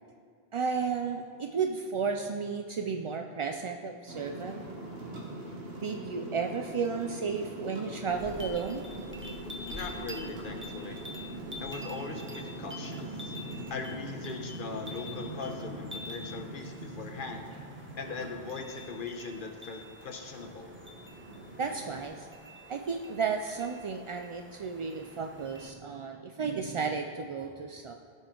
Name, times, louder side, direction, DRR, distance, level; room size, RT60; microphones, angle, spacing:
voice 1, 0.5-4.6 5.8-8.8 21.6-22.3 22.7-27.9, right 5 dB, 50° right, 4 dB, 0.3 m, -33 dB
sound 1, 4.1-22.0, right 1 dB, 70° right, 1.6 m, -42 dB
sound 2, 8.1-25.7, left 1 dB, 15° right, 0.7 m, -47 dB
voice 2, 9.7-11.0 11.6-13.3 13.7-17.5 18.0-20.7, left 4 dB, 55° left, 4 dB, 1.1 m, -40 dB
16.0 x 5.4 x 3.8 m, 2.2 s
omnidirectional pair, 1.1 m